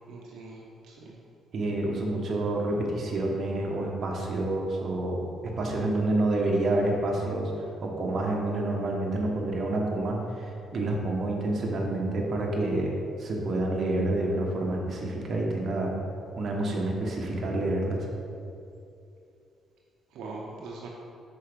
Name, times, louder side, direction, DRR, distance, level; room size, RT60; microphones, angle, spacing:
voice 1, 0.1-1.1 20.1-20.9, right 3 dB, 85° right, -3 dB, 0.8 m, -42 dB
voice 2, 1.5-5.2 5.6-7.5 7.8-15.9 16.4-18.1, right 2 dB, 55° right, -1 dB, 1.2 m, -28 dB
5.6 x 4.8 x 5.1 m, 2.6 s
cardioid pair, 90°, 0 cm